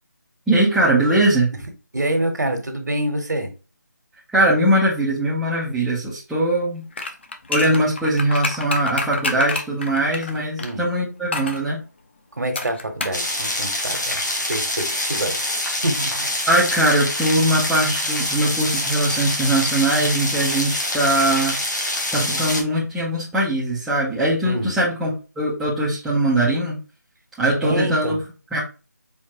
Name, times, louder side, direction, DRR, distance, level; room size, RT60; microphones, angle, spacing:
voice 1, 0.5-1.5 4.3-6.8 7.5-11.8 16.5-21.5 22.1-26.8 27.4-28.2 28.5-28.6, right 1 dB, ahead, 0.4 m, -21 dB
voice 2, 1.9-3.5 10.6-10.8 12.4-16.3 24.4-24.7 27.6-28.2, right 1 dB, 70° right, 1.3 m, -26 dB
sound 1, 6.9-10.7 11.3-11.6 12.6-13.2 13.5-13.6, left 3 dB, 35° left, 0.7 m, -28 dB
sound 2, 13.1-22.6, left 1 dB, 75° left, 1.7 m, -25 dB
4.5 x 3.5 x 2.9 m
figure-of-eight pair, 160°, 10 cm